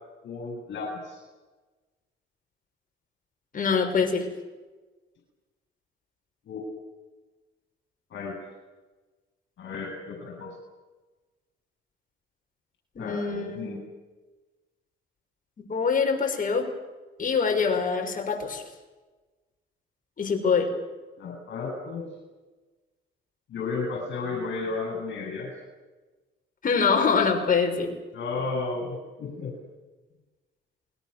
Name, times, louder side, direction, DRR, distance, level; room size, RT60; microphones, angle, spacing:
voice 1, 0.2-1.2 6.5-6.7 8.1-8.4 9.6-10.6 13.0-13.8 21.2-22.1 23.5-25.5 28.1-29.5, left 4 dB, 65° left, -1 dB, 7.8 m, -33 dB
voice 2, 3.5-4.3 13.0-13.8 15.6-16.7 17.2-18.6 20.2-20.7 26.6-27.9, left 5 dB, 45° left, 3 dB, 5.9 m, -24 dB
28.0 x 22.0 x 6.9 m, 1.2 s
cardioid pair, 90°, 20 cm